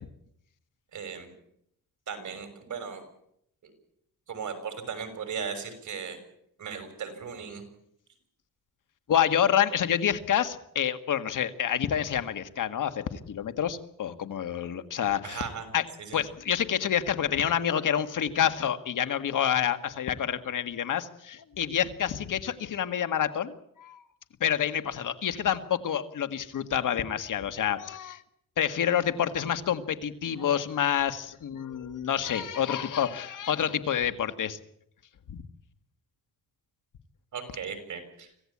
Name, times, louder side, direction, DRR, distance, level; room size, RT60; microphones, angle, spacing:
voice 1, 0.9-1.3 2.1-3.0 3.6-3.7 4.3-6.2 6.6-7.6 15.2-15.7 16.0-16.2 37.3-38.3, right 6 dB, 60° right, 7 dB, 6.1 m, -37 dB
voice 2, 9.1-15.5 15.7-15.8 16.1-24.0 24.4-28.2 28.6-34.6 35.3-35.4, left 9 dB, 70° left, 10 dB, 1.8 m, -28 dB
25.5 x 16.5 x 8.6 m, 0.74 s
cardioid pair, 110°, 33 cm